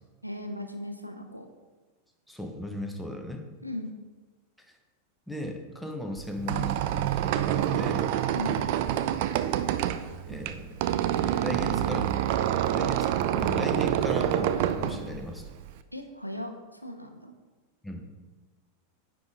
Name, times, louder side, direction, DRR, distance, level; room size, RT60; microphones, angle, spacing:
voice 1, 0.2-1.5 3.6-3.9 8.3-8.6 15.9-17.3, left 1 dB, 90° left, 5 dB, 0.8 m, -37 dB
voice 2, 2.3-3.4 5.3-8.1 10.3-10.7 11.4-12.1 12.7-15.4 17.8-18.1, left 1 dB, ahead, 3 dB, 1.1 m, -36 dB
Squeak, 6.2-15.8, right 11 dB, 50° right, 0.4 m, -27 dB
9.3 x 5.1 x 3.8 m, 1.3 s
figure-of-eight pair, 90°, 0 cm